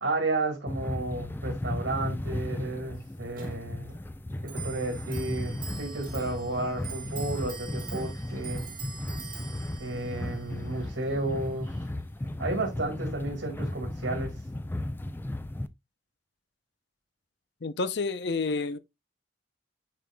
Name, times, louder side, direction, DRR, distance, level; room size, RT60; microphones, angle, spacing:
voice 1, 0.0-3.9 4.4-8.7 9.8-11.8 12.4-14.3, right 2 dB, 80° right, 2.3 m, -32 dB
sound 1, 0.7-15.7, left 1 dB, 10° left, 0.4 m, -35 dB
Clock, 3.3-13.2, right 6 dB, 50° right, 2.3 m, -45 dB
voice 2, 17.6-18.8, left 3 dB, 60° left, 0.6 m, -29 dB
9.1 x 4.8 x 2.3 m
head